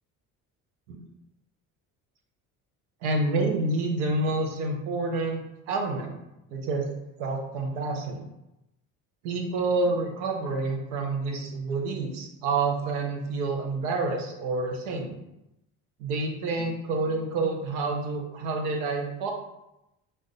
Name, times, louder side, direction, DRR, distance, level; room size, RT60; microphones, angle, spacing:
voice 1, 3.0-6.2 6.5-6.8 7.2-8.2 9.2-15.2 16.0-19.3, right 3 dB, 85° right, 2 dB, 0.7 m, -28 dB
2.5 x 2.1 x 3.6 m, 0.89 s
supercardioid pair, 75°, 42 cm